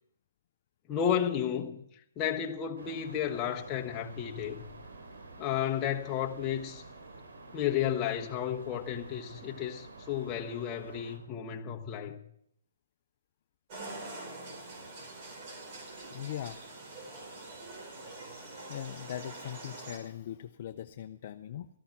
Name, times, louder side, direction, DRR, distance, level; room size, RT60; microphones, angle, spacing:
voice 1, 0.9-1.8 2.2-4.6 5.4-6.8 7.5-12.2, left 9 dB, 20° left, 1.2 m, -32 dB
sound 1, 2.8-11.2, right 3 dB, 80° right, 3.2 m, -50 dB
sound 2, 13.7-20.0, right 2 dB, 35° right, 4.5 m, -45 dB
voice 2, 16.1-16.6 18.7-21.7, left 11 dB, 45° left, 0.6 m, -40 dB
14.5 x 11.5 x 6.0 m
hypercardioid pair, 155°, 0 cm